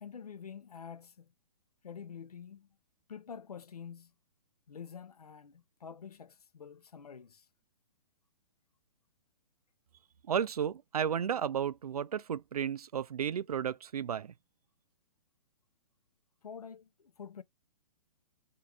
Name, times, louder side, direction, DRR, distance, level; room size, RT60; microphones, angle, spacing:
voice 1, 0.0-1.3 1.8-2.7 3.1-4.1 4.7-7.5 16.4-17.4, left 7 dB, 85° left, 0.6 m, -47 dB
voice 2, 10.3-14.3, right 8 dB, 80° right, 0.5 m, -33 dB
3.7 x 2.7 x 4.7 m
hypercardioid pair, 125°, 19 cm